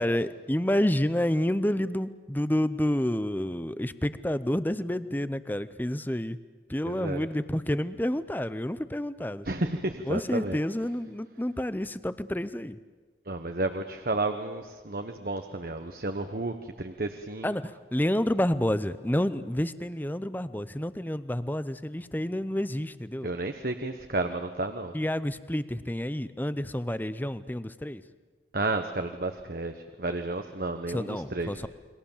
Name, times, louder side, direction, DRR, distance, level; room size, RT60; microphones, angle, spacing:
voice 1, 0.0-6.4 6.7-9.5 10.0-12.8 17.4-23.3 24.9-28.0 30.9-31.7, left 1 dB, 10° left, 14 dB, 0.7 m, -29 dB
voice 2, 6.9-7.3 9.4-10.6 13.3-17.5 23.2-24.9 28.5-29.7 30.0-31.5, right 2 dB, 50° right, 6 dB, 1.1 m, -32 dB
29.5 x 22.5 x 7.3 m, 1.4 s
head